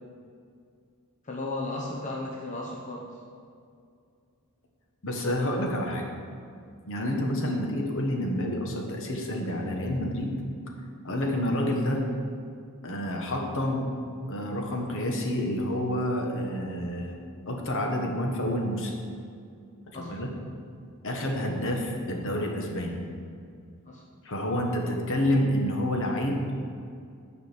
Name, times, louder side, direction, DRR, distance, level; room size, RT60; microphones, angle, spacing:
voice 1, 1.2-3.1 19.9-20.1 23.9-24.0, left 2 dB, 35° left, -2 dB, 0.8 m, -34 dB
voice 2, 5.0-6.1 6.8-10.4 11.0-12.0 12.8-13.9 14.3-17.2 17.5-18.9 19.9-20.3 21.0-22.9 24.2-26.5, left 1 dB, 60° left, 1 dB, 1.3 m, -28 dB
9.9 x 5.0 x 6.7 m, 2.3 s
head